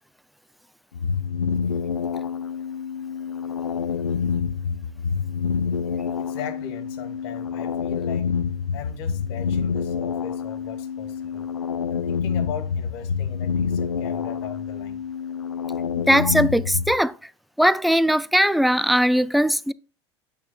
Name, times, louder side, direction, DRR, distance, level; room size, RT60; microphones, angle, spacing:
sound 1, 0.9-17.0, left 6 dB, 85° left, 0.5 m, -27 dB
voice 1, 6.2-8.3 8.7-11.5 11.9-15.0, left 8 dB, 60° left, 1.5 m, -38 dB
voice 2, 16.1-17.1 17.6-19.7, equal, ahead, 0.3 m, -19 dB
8.4 x 6.5 x 2.2 m
figure-of-eight pair, 75°, 15 cm